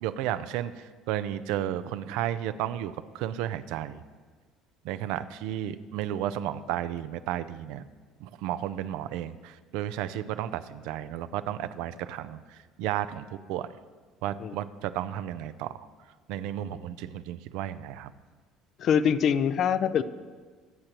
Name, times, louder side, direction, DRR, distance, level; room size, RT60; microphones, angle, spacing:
voice 1, 0.0-4.0 4.8-7.9 8.2-13.7 14.2-15.9 16.3-18.1, right 12 dB, 70° right, 13 dB, 0.5 m, -33 dB
voice 2, 18.8-20.0, left 8 dB, 55° left, 13 dB, 0.6 m, -24 dB
23.5 x 8.7 x 3.0 m, 1.5 s
hypercardioid pair, 60°, 0 cm